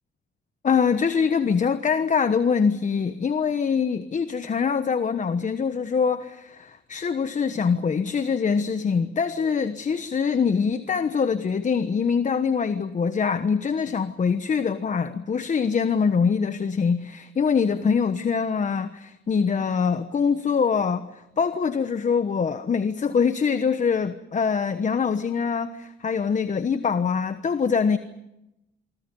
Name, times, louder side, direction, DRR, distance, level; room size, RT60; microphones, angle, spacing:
voice 1, 0.6-28.0, left 6 dB, 40° left, 10 dB, 1.2 m, -24 dB
26.5 x 25.5 x 5.5 m, 0.89 s
cardioid pair, 90°, 20 cm